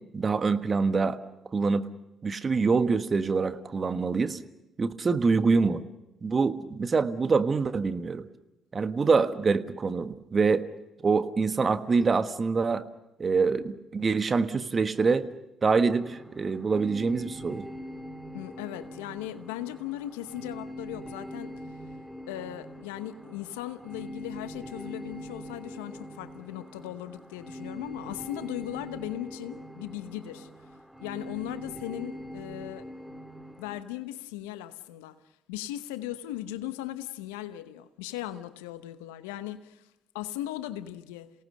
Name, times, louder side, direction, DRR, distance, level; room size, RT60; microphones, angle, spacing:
voice 1, 0.1-1.2 1.5-1.9 2.2-4.4 4.8-5.8 6.2-8.3 8.7-10.7 11.0-12.9 13.2-15.2 15.6-17.7, right 4 dB, 40° right, 1.4 m, -25 dB
sound 1, 15.9-33.8, equal, 5° right, 2.3 m, -43 dB
voice 2, 18.3-21.5 22.3-30.5 31.0-32.8 33.6-35.2 35.5-39.8 40.1-41.3, left 13 dB, 85° left, 0.9 m, -38 dB
28.0 x 18.5 x 6.5 m
hypercardioid pair, 50°, 0 cm